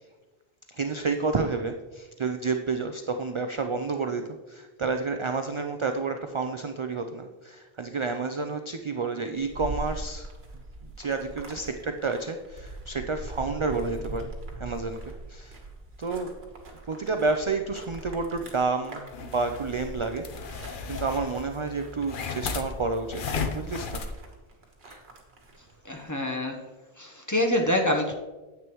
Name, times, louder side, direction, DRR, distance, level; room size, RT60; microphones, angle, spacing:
voice 1, 0.7-10.3 10.8-15.6 16.0-16.3 16.9-24.0 24.8-25.0, right 4 dB, 50° right, 6 dB, 0.4 m, -30 dB
sound 1, 9.3-26.2, right 2 dB, 75° right, 1.5 m, -42 dB
sound 2, 19.1-24.1, left 4 dB, 55° left, 0.8 m, -35 dB
voice 2, 25.8-26.6 27.0-28.2, left 1 dB, 20° left, 2 dB, 0.8 m, -26 dB
9.4 x 8.2 x 3.0 m, 1.2 s
omnidirectional pair, 1.1 m